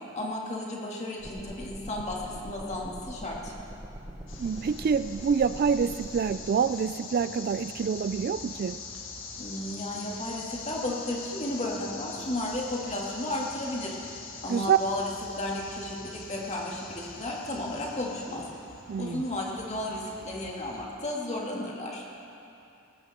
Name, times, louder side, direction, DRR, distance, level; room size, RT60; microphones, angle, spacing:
voice 1, 0.1-3.5 9.4-13.9 14.4-15.1 15.4-18.4 19.0-22.0, left 1 dB, 35° left, -3 dB, 2.4 m, -33 dB
sound 1, 1.2-6.4, equal, 15° right, 1.3 m, -43 dB
sound 2, 4.3-20.8, left 4 dB, 70° left, 1.6 m, -43 dB
voice 2, 4.4-8.8 14.5-14.8 18.9-19.2, right 6 dB, 50° right, 13 dB, 0.3 m, -26 dB
19.5 x 15.0 x 3.7 m, 2.7 s
head